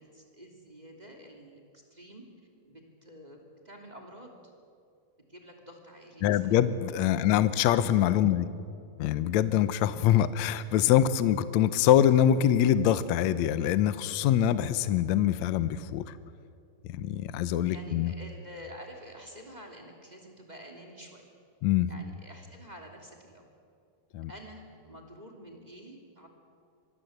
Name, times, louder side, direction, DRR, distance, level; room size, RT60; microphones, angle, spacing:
voice 1, 0.0-2.2 2.7-4.5 5.3-6.6 7.2-7.3 17.7-21.2 21.9-23.5 24.3-26.3, equal, 10° right, 2 dB, 2.4 m, -49 dB
voice 2, 6.2-8.5 9.0-16.0 16.9-18.1 21.6-21.9 24.1-24.3, left 10 dB, 85° left, 13 dB, 1.6 m, -24 dB
25.5 x 21.5 x 8.0 m, 2.3 s
omnidirectional pair, 4.5 m